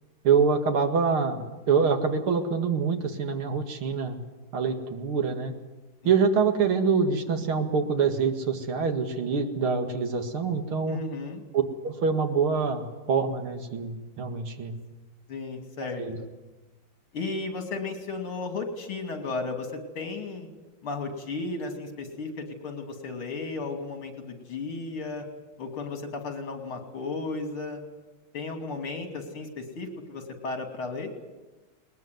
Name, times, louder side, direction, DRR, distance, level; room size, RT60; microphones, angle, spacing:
voice 1, 0.2-4.2 4.5-5.5 6.0-11.0 11.5-14.7 16.0-16.2, right 5 dB, 75° right, 5 dB, 2.8 m, -25 dB
voice 2, 10.9-11.4 15.3-16.3 17.1-20.5 20.8-25.2 25.6-27.8 28.3-31.1, left 3 dB, 75° left, 5 dB, 3.7 m, -34 dB
20.5 x 20.0 x 9.4 m, 1.2 s
omnidirectional pair, 2.4 m